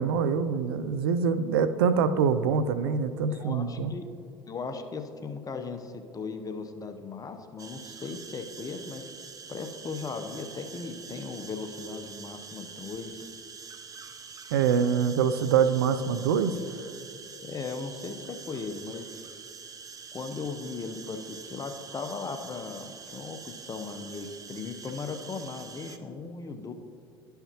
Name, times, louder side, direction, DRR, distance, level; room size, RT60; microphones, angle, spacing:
voice 1, 0.0-3.9 14.5-16.6, right 6 dB, 80° right, 11 dB, 0.4 m, -25 dB
voice 2, 3.3-4.1 4.5-9.0 9.5-13.3 17.4-19.1 20.1-26.7, left 4 dB, 30° left, 7 dB, 0.7 m, -37 dB
sound 1, 7.6-26.0, right 5 dB, 30° right, 0.6 m, -45 dB
12.0 x 5.7 x 2.9 m, 2.4 s
hypercardioid pair, 70°, 12 cm